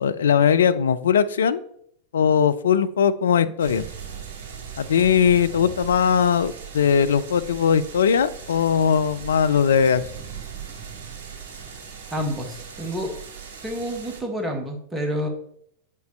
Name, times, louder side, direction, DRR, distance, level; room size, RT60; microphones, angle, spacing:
voice 1, 0.0-1.6 2.1-3.9 4.8-10.0, left 7 dB, 65° left, 12 dB, 0.4 m, -20 dB
sound 1, 3.6-14.2, right 6 dB, 50° right, 2.4 m, -39 dB
voice 2, 12.1-13.1 13.6-15.3, equal, 10° right, 2 dB, 1.3 m, -28 dB
7.7 x 5.3 x 3.2 m, 0.68 s
figure-of-eight pair, 90°, 0 cm